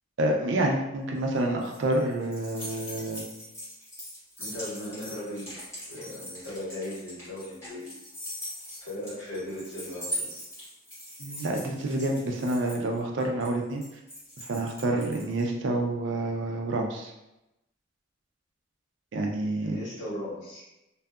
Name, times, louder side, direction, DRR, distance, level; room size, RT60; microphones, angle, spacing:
voice 1, 0.2-3.3 11.2-13.8 14.4-17.1 19.1-19.8, right 1 dB, 70° right, 1 dB, 0.4 m, -28 dB
sound 1, 1.1-15.4, equal, 15° left, 1.1 m, -41 dB
voice 2, 4.4-5.6 5.8-7.9 8.8-10.3 19.6-20.6, left 1 dB, 70° left, -9 dB, 1.3 m, -37 dB
2.7 x 2.3 x 2.3 m, 0.92 s
head